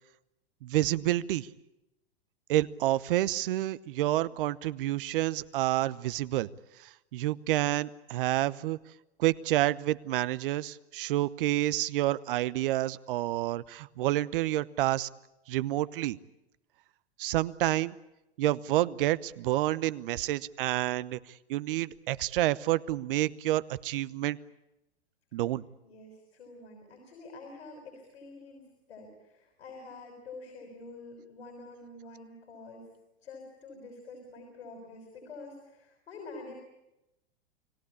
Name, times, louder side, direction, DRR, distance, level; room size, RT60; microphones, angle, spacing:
voice 1, 0.6-1.5 2.5-6.5 6.8-8.8 9.2-15.1 15.5-16.2 17.2-17.9 18.4-21.2 21.5-24.4 25.3-25.6, right 15 dB, 55° right, 18 dB, 0.9 m, -29 dB
voice 2, 25.8-32.8 33.2-36.5, left 3 dB, 75° left, 2 dB, 5.9 m, -47 dB
30.0 x 18.5 x 8.6 m, 0.93 s
hypercardioid pair, 105°, 32 cm